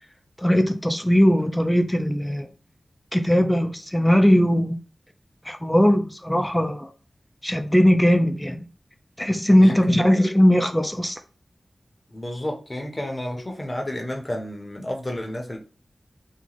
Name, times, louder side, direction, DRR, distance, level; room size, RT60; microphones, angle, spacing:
voice 1, 0.4-2.5 3.1-4.8 5.5-6.9 7.4-8.6 9.2-11.2, equal, 5° left, 0.6 m, -19 dB
voice 2, 9.6-10.1 12.1-15.6, left 1 dB, 30° left, 0.9 m, -31 dB
3.0 x 2.4 x 4.0 m
wide cardioid pair, 65°, 0 cm